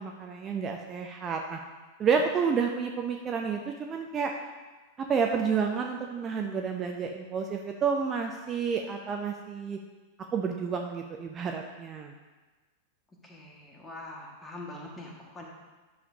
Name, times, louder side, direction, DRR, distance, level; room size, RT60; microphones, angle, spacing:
voice 1, 0.0-1.6 2.0-4.3 5.0-9.8 10.3-12.1, right 6 dB, 25° right, 3 dB, 0.6 m, -30 dB
voice 2, 13.2-15.4, left 2 dB, 15° left, -1 dB, 1.7 m, -43 dB
11.0 x 6.9 x 2.7 m, 1.2 s
figure-of-eight pair, 90°, 0 cm